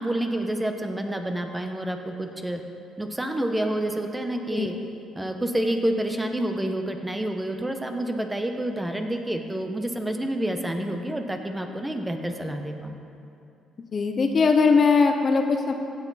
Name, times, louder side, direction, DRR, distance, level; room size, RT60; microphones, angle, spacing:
voice 1, 0.0-2.6 3.0-4.7 5.2-13.0, right 1 dB, 10° right, 4 dB, 1.0 m, -28 dB
voice 2, 13.9-15.7, left 4 dB, 40° left, 5 dB, 0.9 m, -20 dB
15.5 x 7.0 x 4.1 m, 2.7 s
supercardioid pair, 75°, 0 cm